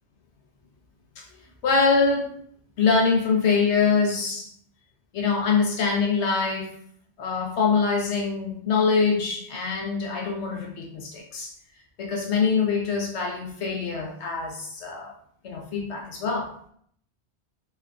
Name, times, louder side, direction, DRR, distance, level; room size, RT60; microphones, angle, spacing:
voice 1, 1.2-2.3 2.8-4.5 5.1-6.8 7.2-11.5 12.0-15.1 15.4-16.5, left 5 dB, 80° left, 0 dB, 1.0 m, -24 dB
3.4 x 2.4 x 3.3 m, 0.63 s
omnidirectional pair, 1.1 m